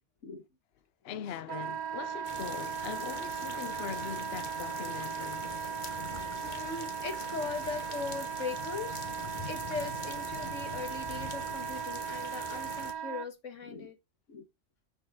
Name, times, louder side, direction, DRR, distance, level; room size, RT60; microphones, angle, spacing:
voice 1, 1.0-5.9, left 9 dB, 65° left, 0.8 m, -42 dB
Wind instrument woodwind instrument, 1.5-13.3, right 9 dB, 60° right, 0.4 m, -38 dB
sound 1, 2.2-12.9, left 4 dB, 40° left, 1.4 m, -43 dB
voice 2, 6.4-14.0 14.3-14.4, left 4 dB, 90° left, 1.9 m, -40 dB
7.1 x 6.6 x 3.6 m
omnidirectional pair, 1.2 m